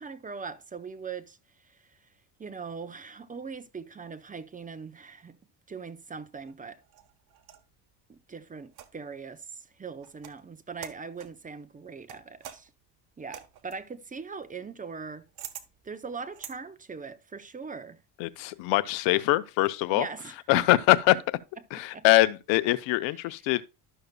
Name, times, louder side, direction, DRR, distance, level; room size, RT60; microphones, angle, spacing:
voice 1, 0.0-1.4 1.6-1.8 2.4-5.4 5.7-6.8 8.1-12.7 13.2-15.2 15.8-18.0 19.9-20.8 21.9-22.1 23.2-23.3, right 5 dB, 20° right, 0.6 m, -40 dB
sound 1, 6.4-7.7 8.7-9.2 10.0-10.4 10.8-11.4 12.1-16.6, right 11 dB, 60° right, 1.2 m, -47 dB
voice 2, 18.2-20.1 20.5-21.1 21.7-23.6, left 17 dB, 85° left, 0.7 m, -23 dB
12.0 x 6.6 x 2.2 m
cardioid pair, 115°, 43 cm